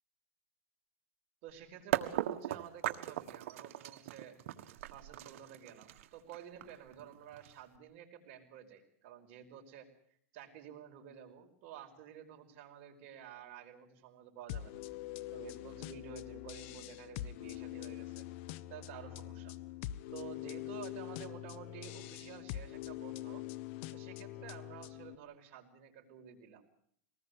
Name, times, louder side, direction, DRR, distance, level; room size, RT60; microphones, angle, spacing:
voice 1, 1.4-4.3 4.9-9.9 10.3-14.8 15.3-18.2 18.7-19.6 20.1-23.4 23.9-26.6, right 9 dB, 55° right, 3 dB, 5.1 m, -51 dB
sound 1, 1.5-1.6 1.9-7.8, right 13 dB, 75° right, 1.6 m, -38 dB
sound 2, 14.5-25.2, left 14 dB, 60° left, 1.2 m, -44 dB
24.0 x 19.5 x 8.1 m, 0.65 s
supercardioid pair, 140°, 7 cm